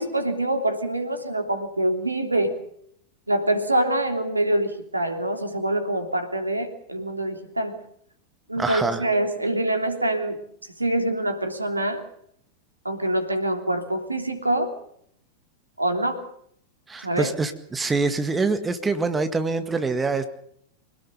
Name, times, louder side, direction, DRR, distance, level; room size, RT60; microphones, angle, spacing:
voice 1, 0.0-2.5 3.3-7.7 8.5-10.4 10.8-12.0 12.8-14.7 15.8-16.2 17.0-17.3, right 1 dB, 85° right, 5 dB, 3.1 m, -25 dB
voice 2, 8.6-9.0 16.9-20.3, right 4 dB, 15° right, 8 dB, 1.9 m, -25 dB
26.0 x 18.0 x 6.9 m, 0.69 s
figure-of-eight pair, 90°, 0 cm